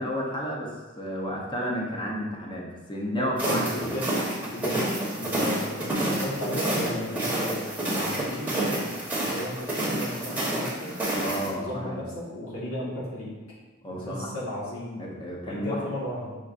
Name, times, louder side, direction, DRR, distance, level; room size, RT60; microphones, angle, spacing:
voice 1, 0.0-3.9 11.2-12.0 13.8-14.3 15.0-15.9, equal, 25° left, -2 dB, 0.7 m, -31 dB
voice 2, 3.1-4.1 4.5-7.6 7.9-8.9 9.2-11.0 11.5-13.3 13.9-15.0 15.5-16.4, left 1 dB, 80° left, -7 dB, 1.5 m, -34 dB
sound 1, 3.4-11.5, right 1 dB, 10° right, 1.0 m, -29 dB
6.0 x 3.5 x 2.5 m, 1.2 s
head